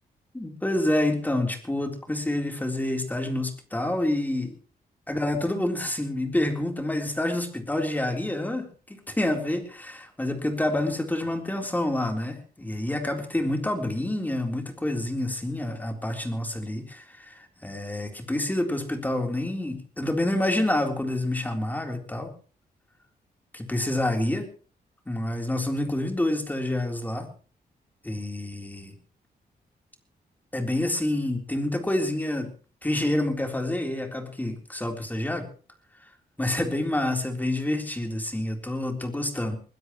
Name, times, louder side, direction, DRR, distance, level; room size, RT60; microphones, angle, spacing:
voice 1, 0.3-4.5 5.1-22.3 23.5-24.5 25.1-27.3 28.0-28.9 30.5-32.5 32.8-35.5 36.4-39.6, left 1 dB, 10° left, 3 dB, 3.8 m, -28 dB
21.5 x 20.5 x 3.2 m, 0.39 s
wide cardioid pair, 120°, 17 cm